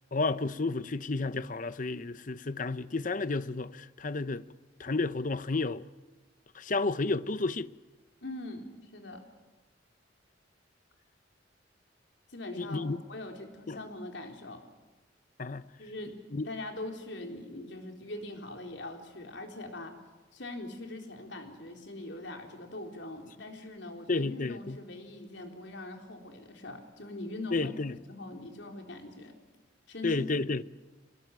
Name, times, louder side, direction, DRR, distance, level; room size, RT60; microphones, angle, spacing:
voice 1, 0.1-4.4 4.8-5.9 6.5-7.7 12.5-13.0 13.7-13.8 15.4-15.6 16.3-16.5 24.1-24.8 27.5-28.0 30.0-30.6, left 3 dB, 45° left, 0.7 m, -31 dB
voice 2, 8.2-9.2 12.3-14.6 15.8-16.2 16.5-20.0 20.3-27.7 28.1-29.3 29.9-30.3, left 2 dB, 70° left, 4.0 m, -42 dB
25.5 x 20.0 x 9.4 m
head